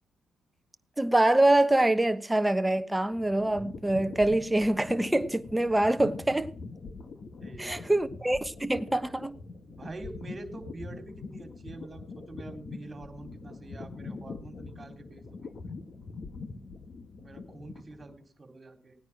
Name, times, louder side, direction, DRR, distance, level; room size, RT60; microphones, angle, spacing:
voice 1, 1.0-6.5 7.6-9.4, right 1 dB, 10° right, 1.2 m, -25 dB
sound 1, 2.8-18.2, left 4 dB, 45° left, 1.7 m, -43 dB
voice 2, 7.4-8.0 9.6-15.6 17.2-19.0, right 2 dB, 30° right, 3.6 m, -46 dB
18.5 x 9.6 x 6.0 m
cardioid pair, 90°, 0 cm